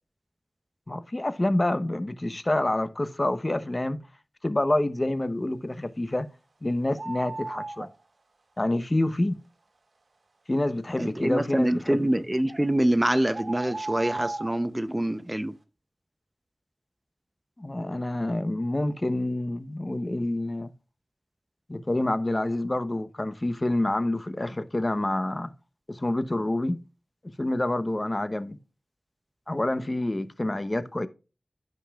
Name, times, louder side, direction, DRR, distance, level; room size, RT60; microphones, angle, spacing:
voice 1, 0.9-4.0 4.4-6.3 6.6-7.9 8.6-9.4 10.5-12.0 17.6-20.7 21.7-25.5 25.9-26.8 27.4-28.6 29.5-31.1, left 1 dB, 35° left, 0.9 m, -27 dB
sound 1, 7.0-7.9 12.5-12.6 13.3-14.6, right 2 dB, 75° right, 1.7 m, -35 dB
voice 2, 11.0-15.5, right 1 dB, 20° right, 0.7 m, -25 dB
15.5 x 5.4 x 2.4 m
wide cardioid pair, 50°, 0 cm